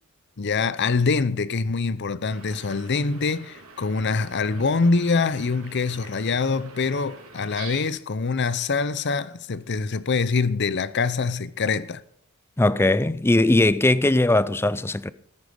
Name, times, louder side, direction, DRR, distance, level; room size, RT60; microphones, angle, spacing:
voice 1, 0.4-12.0, left 4 dB, 55° left, 0.7 m, -24 dB
sound 1, 2.3-7.9, right 4 dB, 85° right, 3.4 m, -45 dB
voice 2, 12.6-15.1, left 2 dB, 10° left, 0.4 m, -19 dB
13.5 x 10.0 x 5.2 m
head